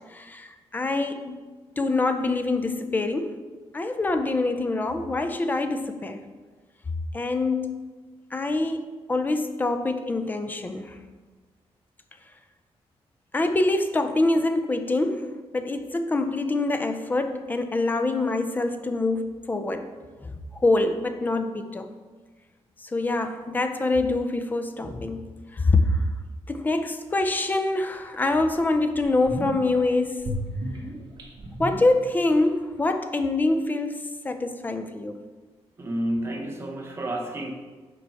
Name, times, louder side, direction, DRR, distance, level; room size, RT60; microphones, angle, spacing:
voice 1, 0.1-1.4 1.8-3.3 3.7-6.2 7.1-7.8 8.3-11.0 13.3-19.9 20.2-21.9 22.8-26.0 26.5-30.3 31.6-34.0 34.2-35.2, left 2 dB, 15° left, 8 dB, 0.4 m, -25 dB
sound 1, 27.9-28.0 28.5-28.6 29.0-29.8 30.2-32.5 32.7-32.8, equal, 40° right, 1.4 m, -33 dB
voice 2, 35.8-37.5, right 1 dB, 25° right, 2 dB, 0.8 m, -30 dB
6.7 x 4.6 x 4.5 m, 1.3 s
wide cardioid pair, 170°, 11 cm